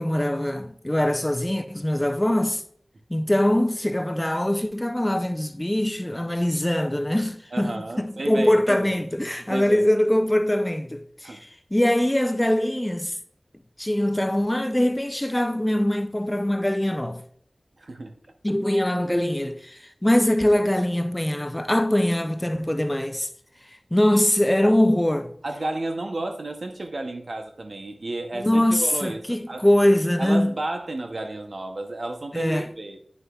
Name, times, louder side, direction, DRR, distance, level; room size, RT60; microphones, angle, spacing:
voice 1, 0.0-2.6 3.1-13.1 13.8-17.2 18.4-23.3 23.9-25.3 28.3-30.5 32.3-32.7, left 1 dB, 15° left, 0.5 m, -22 dB
voice 2, 7.5-8.9 9.5-9.9 11.2-11.4 17.8-18.2 24.6-24.8 25.4-29.7 30.2-33.0, right 2 dB, 75° right, 0.7 m, -32 dB
9.4 x 6.4 x 2.3 m
wide cardioid pair, 65°, 0 cm